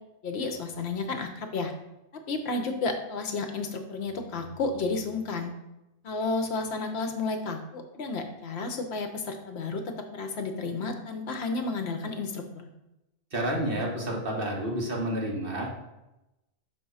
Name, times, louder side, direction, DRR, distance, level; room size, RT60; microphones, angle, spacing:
voice 1, 0.2-1.7 2.1-5.5 6.0-12.7, left 3 dB, 65° left, 6 dB, 0.9 m, -32 dB
voice 2, 13.3-15.7, right 1 dB, 50° right, -2 dB, 1.5 m, -30 dB
6.1 x 3.6 x 5.4 m, 0.93 s
omnidirectional pair, 1.2 m